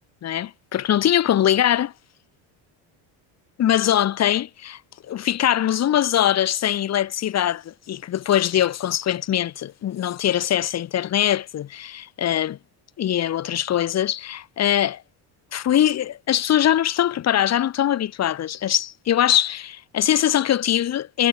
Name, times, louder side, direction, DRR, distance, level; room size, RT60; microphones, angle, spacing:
voice 1, 0.2-1.9 3.6-4.8 5.1-12.6 13.0-15.0 15.5-21.3, left 11 dB, 35° left, 0.7 m, -22 dB
cardioid pair, 100°, 47 cm